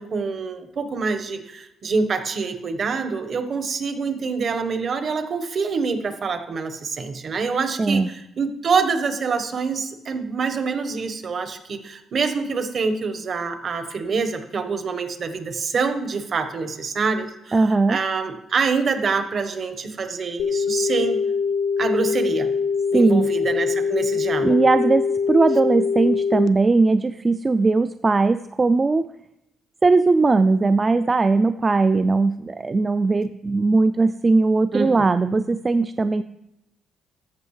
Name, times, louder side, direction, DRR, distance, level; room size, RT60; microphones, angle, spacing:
voice 1, 0.0-21.2 21.8-22.5 22.9-24.6 34.7-35.0, right 5 dB, 50° right, 8 dB, 1.2 m, -26 dB
voice 2, 7.8-8.1 17.5-18.0 22.9-23.2 24.4-29.1 29.8-36.2, right 3 dB, 25° right, 11 dB, 0.3 m, -19 dB
sound 1, 20.4-26.5, left 5 dB, 75° left, 0.4 m, -23 dB
14.0 x 5.4 x 3.2 m, 0.87 s
cardioid pair, 90°, 0 cm